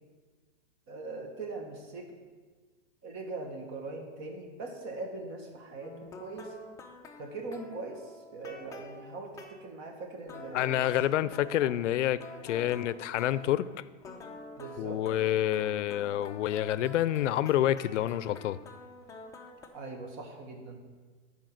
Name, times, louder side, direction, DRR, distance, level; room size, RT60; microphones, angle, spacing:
voice 1, 0.9-2.1 3.0-6.6 7.2-11.7 14.6-15.0 19.7-20.8, right 3 dB, 35° right, 1.5 m, -41 dB
sound 1, 5.8-9.7 10.3-13.7 14.0-19.7, left 3 dB, 10° left, 0.5 m, -48 dB
voice 2, 10.5-13.7 14.8-18.6, left 12 dB, 90° left, 0.5 m, -28 dB
10.5 x 4.7 x 6.3 m
supercardioid pair, 145°, 35 cm